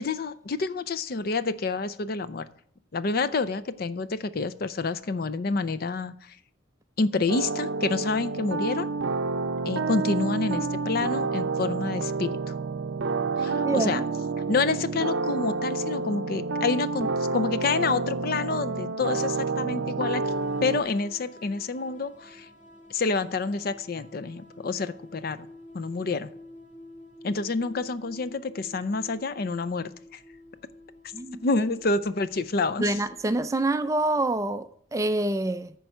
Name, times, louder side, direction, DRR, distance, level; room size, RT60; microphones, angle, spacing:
voice 1, 0.0-2.5 2.9-6.4 7.0-8.9 9.6-12.6 13.4-14.0 14.5-20.3 20.6-22.5 22.9-25.5 25.7-26.3 27.2-30.2 31.4-33.0, left 3 dB, 50° left, 0.5 m, -28 dB
sound 1, 7.3-20.8, right 4 dB, 70° right, 0.5 m, -29 dB
sound 2, 20.2-33.4, left 1 dB, 25° left, 2.3 m, -49 dB
voice 2, 32.8-35.7, right 2 dB, 15° right, 0.3 m, -26 dB
10.5 x 4.6 x 6.6 m
head